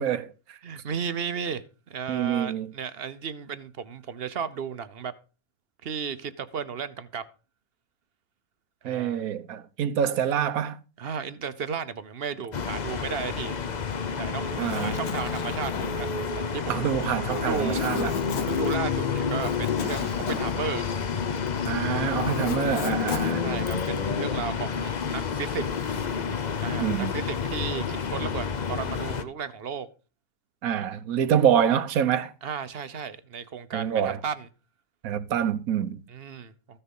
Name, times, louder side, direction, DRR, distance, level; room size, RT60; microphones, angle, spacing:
voice 1, 0.0-0.6 2.1-2.7 8.8-10.8 14.6-15.0 16.7-18.2 21.7-23.5 26.8-27.1 30.6-32.3 33.7-34.2 35.0-36.0, right 9 dB, 70° right, 1.3 m, -26 dB
voice 2, 0.6-5.1 5.8-7.2 8.8-9.3 11.0-13.5 14.0-16.1 16.5-16.9 17.3-17.8 18.5-20.8 23.4-25.6 26.6-29.9 32.4-34.5 36.1-36.8, right 6 dB, 50° right, 0.9 m, -34 dB
sound 1, 12.5-29.2, left 6 dB, 40° left, 0.7 m, -29 dB
Zipper (clothing), 14.5-21.6 21.9-24.0, left 6 dB, 85° left, 1.7 m, -38 dB
14.5 x 6.7 x 5.4 m
omnidirectional pair, 1.6 m